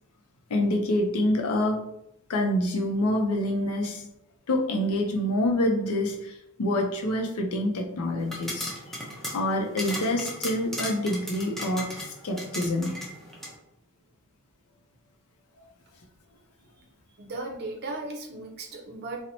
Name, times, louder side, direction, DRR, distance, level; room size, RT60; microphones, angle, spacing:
voice 1, 0.5-1.8 2.3-4.1 4.5-8.7 9.3-11.9 12.2-12.9, left 1 dB, 80° left, 3 dB, 0.5 m, -26 dB
sound 1, 8.2-13.5, equal, ahead, 0.4 m, -37 dB
voice 2, 17.2-19.2, right 2 dB, 50° right, 0 dB, 0.6 m, -36 dB
2.8 x 2.0 x 2.6 m, 0.81 s
head